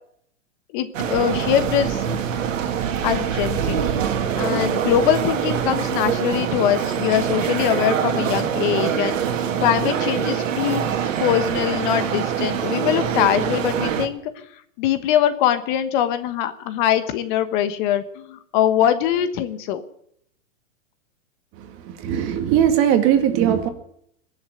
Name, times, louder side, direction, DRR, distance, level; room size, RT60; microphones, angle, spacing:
voice 1, 0.7-2.0 3.0-3.8 4.4-9.2 9.6-10.9 11.2-19.8, left 10 dB, 40° left, 11 dB, 1.2 m, -22 dB
sound 1, 0.9-14.1, right 8 dB, 70° right, 2.1 m, -24 dB
voice 2, 21.6-23.7, right 10 dB, 35° right, 7 dB, 2.1 m, -19 dB
21.0 x 7.2 x 9.2 m, 0.71 s
hypercardioid pair, 145°, 39 cm